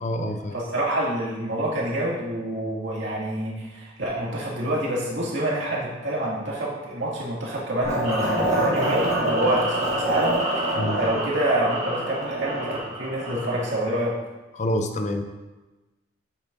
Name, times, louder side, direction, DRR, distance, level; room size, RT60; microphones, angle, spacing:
voice 1, 0.0-0.6 10.8-11.0 14.6-15.2, left 1 dB, 35° left, 6 dB, 0.5 m, -27 dB
voice 2, 0.5-14.1, right 1 dB, 65° right, -5 dB, 2.2 m, -27 dB
sound 1, 7.8-13.8, right 1 dB, 35° right, 1.8 m, -26 dB
8.5 x 7.2 x 2.6 m, 1.1 s
head